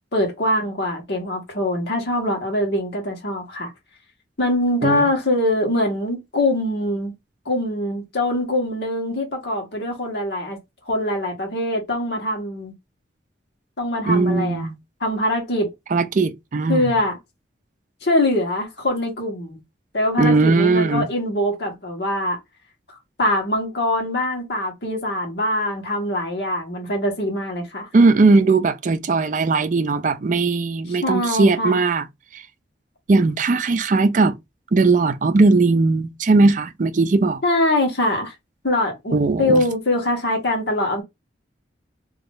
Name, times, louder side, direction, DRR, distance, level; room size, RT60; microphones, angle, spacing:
voice 1, 0.1-3.7 4.4-7.1 7.4-10.6 10.8-12.7 13.8-14.7 15.0-15.7 16.7-17.2 18.0-19.6 19.9-22.4 23.2-27.9 30.9-31.8 37.4-38.3 38.6-41.0, left 1 dB, 60° left, 1.5 m, -23 dB
voice 2, 14.1-14.8 15.9-16.9 20.2-21.1 27.9-32.1 32.3-32.4 33.1-34.3 34.7-37.4 39.1-39.6, right 3 dB, 45° right, 0.4 m, -18 dB
3.7 x 3.0 x 2.5 m
head